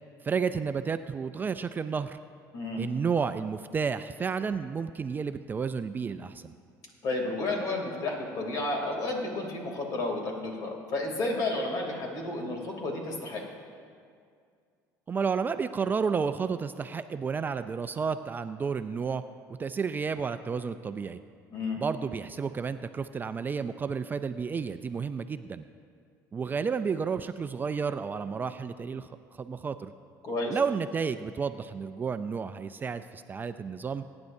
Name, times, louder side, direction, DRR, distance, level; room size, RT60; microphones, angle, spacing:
voice 1, 0.2-2.2 2.8-6.5 15.1-19.3 19.6-21.2 21.8-25.6 26.3-29.9 30.5-34.0, right 5 dB, 25° right, 11 dB, 0.3 m, -31 dB
voice 2, 7.0-13.4 21.5-21.8 30.2-30.6, left 2 dB, 55° left, 1 dB, 2.8 m, -31 dB
22.0 x 9.6 x 2.7 m, 2.2 s
cardioid pair, 110°, 7 cm